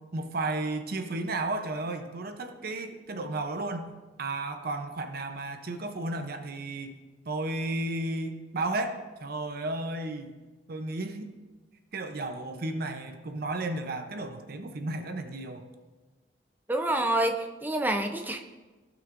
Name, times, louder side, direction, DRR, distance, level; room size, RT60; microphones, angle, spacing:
voice 1, 0.0-3.9 4.2-7.0 7.3-10.4 10.7-11.4 11.9-15.7, right 2 dB, 55° right, 7 dB, 0.7 m, -33 dB
voice 2, 16.7-18.4, right 1 dB, 10° right, 5 dB, 0.5 m, -27 dB
16.0 x 6.0 x 2.5 m, 1.2 s
head